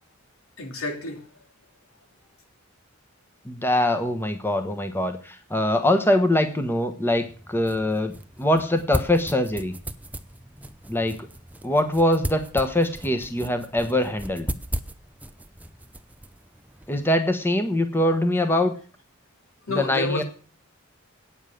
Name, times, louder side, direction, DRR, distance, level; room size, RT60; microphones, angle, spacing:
voice 1, 0.6-1.4 17.5-17.6 19.6-20.2, left 2 dB, 85° left, 2.7 m, -30 dB
voice 2, 3.4-9.7 10.9-11.2 11.6-14.5 16.9-18.7 19.8-20.2, left 1 dB, 10° left, 1.1 m, -23 dB
sound 1, 7.1-17.1, right 1 dB, 5° right, 0.6 m, -36 dB
9.1 x 7.2 x 8.5 m
head